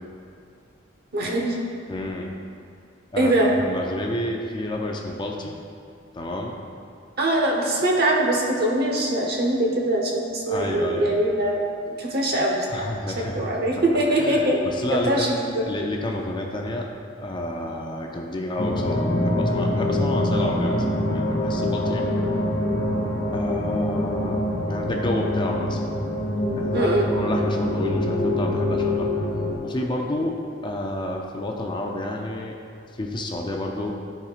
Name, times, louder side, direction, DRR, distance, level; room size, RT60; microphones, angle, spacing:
voice 1, 1.1-1.6 3.2-3.5 7.2-12.9 13.2-14.6 14.9-15.3 15.5-15.7 26.7-27.1, right 1 dB, 55° right, -1 dB, 1.0 m, -22 dB
voice 2, 1.9-2.3 3.1-5.6 6.1-6.6 10.5-11.3 12.7-13.4 14.1-16.9 17.2-22.1 23.3-25.8 26.6-29.1 29.6-32.6 32.9-33.9, left 1 dB, 25° left, 1 dB, 0.5 m, -30 dB
sound 1, 18.6-29.6, left 1 dB, 70° left, 1.4 m, -24 dB
12.5 x 4.3 x 2.5 m, 2.4 s
head